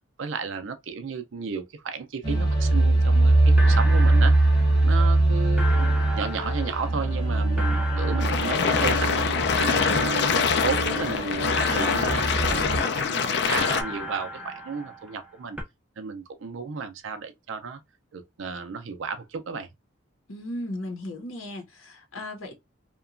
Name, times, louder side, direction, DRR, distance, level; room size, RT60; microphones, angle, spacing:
voice 1, 0.2-4.4 4.8-9.2 9.6-10.2 10.6-15.6 16.0-17.8 18.1-19.7, right 5 dB, 75° right, 0.5 m, -33 dB
sound 1, 2.2-12.8, right 2 dB, 20° left, 0.9 m, -22 dB
sound 2, 3.1-3.2 3.6-5.2 5.6-9.3 9.6-11.2 11.6-13.2 13.6-15.3 15.6-15.7, left 1 dB, 5° right, 0.5 m, -36 dB
sound 3, 8.2-13.8, left 6 dB, 55° left, 0.4 m, -24 dB
voice 2, 20.3-22.5, left 1 dB, 85° left, 0.8 m, -36 dB
2.9 x 2.2 x 2.4 m
head